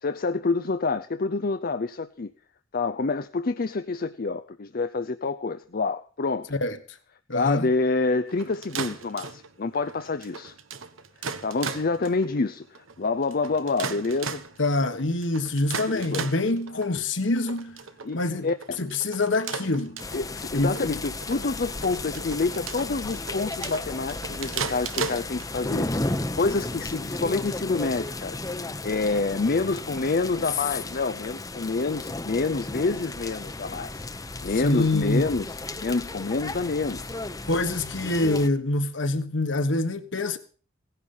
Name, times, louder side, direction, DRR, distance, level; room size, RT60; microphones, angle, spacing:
voice 1, 0.0-2.3 2.7-6.5 7.3-10.5 11.2-14.4 15.9-16.3 18.0-18.8 20.1-28.4 28.8-34.0 34.4-37.1, left 3 dB, 45° left, 0.6 m, -27 dB
voice 2, 7.3-7.6 14.6-17.8 18.1-18.5 18.8-20.0 20.5-21.0 34.6-35.3 37.4-40.4, left 2 dB, 65° left, 1.5 m, -25 dB
sound 1, 8.3-25.8, right 5 dB, 80° right, 1.1 m, -37 dB
sound 2, 20.0-38.5, left 2 dB, 15° left, 0.9 m, -34 dB
17.0 x 11.0 x 5.6 m
head